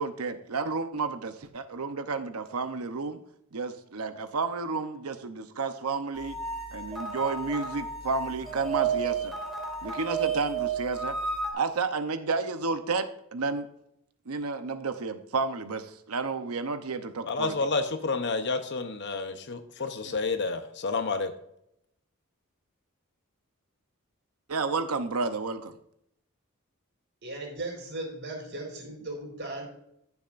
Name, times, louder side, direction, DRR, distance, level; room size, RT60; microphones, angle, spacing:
voice 1, 0.0-3.2 3.5-6.4 6.7-9.3 9.8-11.2 11.5-13.1 13.3-13.7 14.3-17.6 20.0-20.2 24.5-25.7, right 4 dB, 85° right, 9 dB, 0.8 m, -31 dB
sound 1, 6.1-11.5, right 5 dB, ahead, 2.3 m, -32 dB
voice 2, 17.3-21.3, left 3 dB, 55° left, 8 dB, 0.8 m, -30 dB
voice 3, 27.2-29.6, right 2 dB, 55° right, 0 dB, 4.3 m, -37 dB
15.5 x 7.1 x 2.5 m, 0.75 s
head